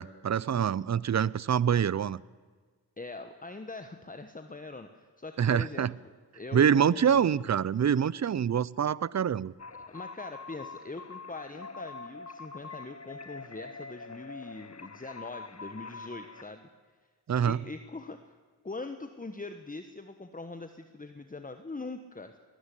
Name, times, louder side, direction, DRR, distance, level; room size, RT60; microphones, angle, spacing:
voice 1, 0.0-2.2 5.4-5.9 6.5-9.5 17.3-17.6, right 8 dB, 45° right, 0.6 m, -25 dB
voice 2, 3.0-6.1 6.3-7.4 9.7-16.7 17.4-18.2 18.6-22.4, left 3 dB, 20° left, 1.2 m, -42 dB
sound 1, 9.6-16.4, left 4 dB, 40° left, 1.5 m, -45 dB
21.0 x 13.0 x 10.0 m
cardioid pair, 55°, 39 cm